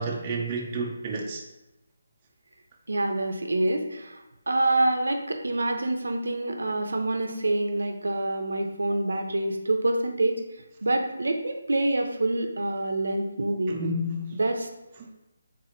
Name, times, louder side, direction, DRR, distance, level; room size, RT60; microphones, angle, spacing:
voice 1, 0.0-1.4 13.7-14.3 15.0-15.1, right 1 dB, 25° right, 0 dB, 0.5 m, -30 dB
voice 2, 2.9-4.2 4.5-10.4 10.8-13.8 14.3-14.7, right 2 dB, 85° right, 5 dB, 0.5 m, -26 dB
4.1 x 3.6 x 2.6 m, 0.98 s
figure-of-eight pair, 160°, 0 cm